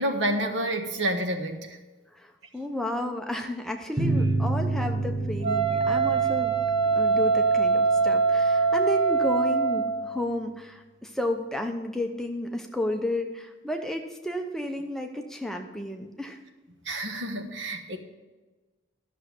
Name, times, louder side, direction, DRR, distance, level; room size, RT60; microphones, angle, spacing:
voice 1, 0.0-1.8 16.8-18.0, right 1 dB, 70° right, 5 dB, 1.2 m, -29 dB
voice 2, 2.1-6.5 6.9-16.4, left 1 dB, ahead, 3 dB, 0.6 m, -32 dB
sound 1, 4.0-9.1, right 2 dB, 20° right, 1.2 m, -30 dB
Wind instrument woodwind instrument, 5.4-10.1, right 4 dB, 40° right, 2.1 m, -23 dB
11.5 x 6.6 x 6.0 m, 1.2 s
head